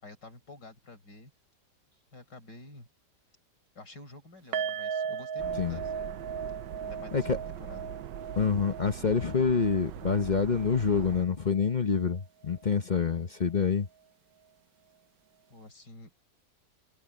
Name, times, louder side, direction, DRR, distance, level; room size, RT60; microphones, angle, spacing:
voice 1, 0.0-1.3 2.1-2.9 3.7-6.1 6.8-7.9 12.9-13.1 15.5-16.1, left 2 dB, 70° left, 6.0 m, -49 dB
sound 1, 4.5-11.7 12.0-12.2 12.6-12.7, right 7 dB, 60° right, 1.2 m, -38 dB
sound 2, 5.4-11.3, right 11 dB, 80° right, 1.4 m, -42 dB
voice 2, 8.4-13.9, left 5 dB, 35° left, 0.7 m, -27 dB
omnidirectional pair, 1.9 m